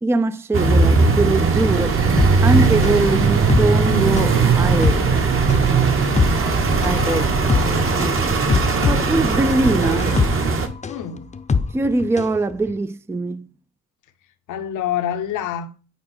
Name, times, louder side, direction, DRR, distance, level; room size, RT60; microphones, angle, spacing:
voice 1, 0.0-5.0 6.8-7.5 8.0-8.4 8.8-10.2 11.7-13.5, right 2 dB, 10° right, 0.4 m, -22 dB
sound 1, 0.5-10.7, right 4 dB, 45° right, 1.3 m, -18 dB
sound 2, 1.1-7.4, right 7 dB, 80° right, 1.1 m, -34 dB
sound 3, 2.2-12.4 12.7-12.8, left 5 dB, 25° left, 0.7 m, -24 dB
voice 2, 6.2-7.3 7.6-7.9 10.9-11.3 14.5-15.7, left 10 dB, 80° left, 1.0 m, -28 dB
8.6 x 4.6 x 4.3 m
cardioid pair, 90°, 30 cm